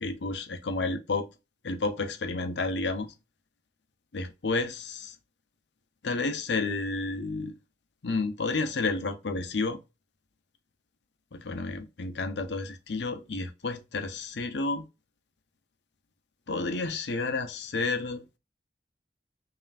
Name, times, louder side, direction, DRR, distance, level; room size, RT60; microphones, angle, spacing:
voice 1, 0.0-1.2 1.6-3.1 4.1-5.1 6.0-7.5 8.0-9.8 11.3-14.8 16.5-18.2, left 3 dB, 85° left, 0.8 m, -31 dB
5.5 x 2.9 x 2.4 m
head